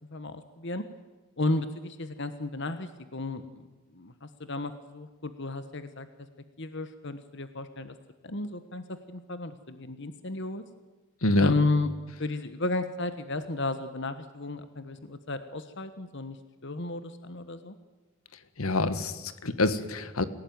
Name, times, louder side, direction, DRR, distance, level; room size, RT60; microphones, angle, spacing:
voice 1, 0.1-0.8 1.4-6.1 6.6-7.9 8.2-10.6 11.4-11.9 12.2-16.4 16.6-17.7, left 2 dB, 55° left, 11 dB, 1.3 m, -33 dB
voice 2, 11.2-11.5 18.6-20.2, left 2 dB, 80° left, 12 dB, 1.6 m, -26 dB
26.5 x 17.0 x 9.4 m, 1.2 s
head